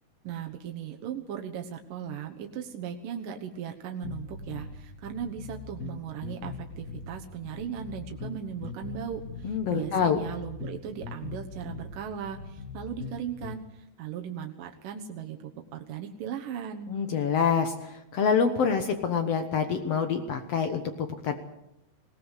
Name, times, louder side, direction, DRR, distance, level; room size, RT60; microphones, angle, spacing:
voice 1, 0.2-16.9, right 8 dB, 65° right, 3 dB, 2.5 m, -37 dB
sound 1, 4.0-13.6, left 4 dB, 60° left, 0.9 m, -41 dB
voice 2, 9.4-10.2 16.9-21.3, left 6 dB, 80° left, 7 dB, 1.4 m, -26 dB
21.0 x 18.5 x 8.2 m, 0.85 s
omnidirectional pair, 4.7 m